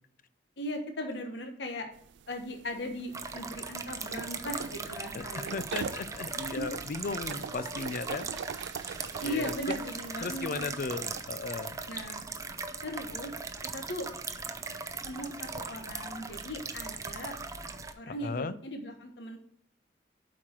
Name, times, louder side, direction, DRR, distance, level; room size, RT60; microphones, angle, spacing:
voice 1, 0.6-1.9 2.3-5.6 6.4-6.5 9.2-10.7 11.9-12.2 12.8-13.3 13.7-14.1 15.0-17.3 18.0-19.4, left 1 dB, 75° left, 4 dB, 1.2 m, -38 dB
sound 1, 1.9-11.2, right 7 dB, 75° right, 0.3 m, -44 dB
sound 2, 3.1-17.9, right 4 dB, 20° right, 0.5 m, -39 dB
voice 2, 5.1-8.3 9.2-9.7 10.2-11.8 18.1-18.5, left 4 dB, 50° left, 14 dB, 0.5 m, -36 dB
7.8 x 4.7 x 4.5 m, 0.66 s
head